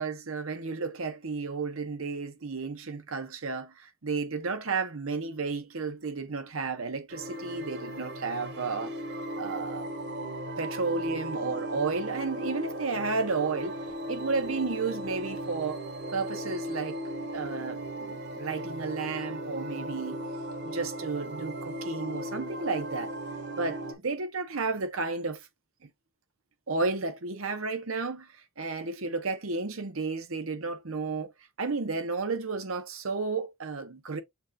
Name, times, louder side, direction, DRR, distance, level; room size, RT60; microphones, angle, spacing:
voice 1, 0.0-8.9 9.4-9.9 10.6-13.8 14.1-15.8 16.1-17.0 17.3-20.2 20.6-23.1 23.6-25.5 26.7-28.3 28.6-31.3 31.6-34.2, right 4 dB, 80° right, 1.0 m, -32 dB
sound 1, 7.1-23.9, right 1 dB, 55° right, 1.1 m, -37 dB
7.2 x 2.5 x 2.8 m
head